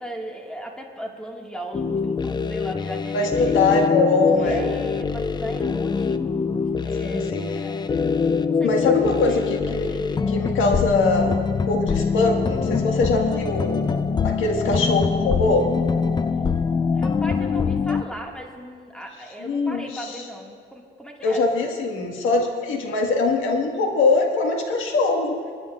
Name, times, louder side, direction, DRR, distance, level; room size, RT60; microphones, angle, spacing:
voice 1, 0.0-3.6 4.4-6.5 6.8-7.8 8.6-8.9 9.3-10.4 12.9-13.0 17.0-21.4, equal, 5° left, 0 dB, 1.8 m, -37 dB
sound 1, 1.7-18.0, left 5 dB, 20° left, 0.3 m, -24 dB
voice 2, 3.1-4.6 7.0-7.6 8.6-9.9 10.3-11.4 11.7-13.8 14.2-15.7 19.4-20.2 21.2-25.3, left 3 dB, 80° left, 2 dB, 1.6 m, -22 dB
27.5 x 9.9 x 2.4 m, 2.1 s
cardioid pair, 90°, 20 cm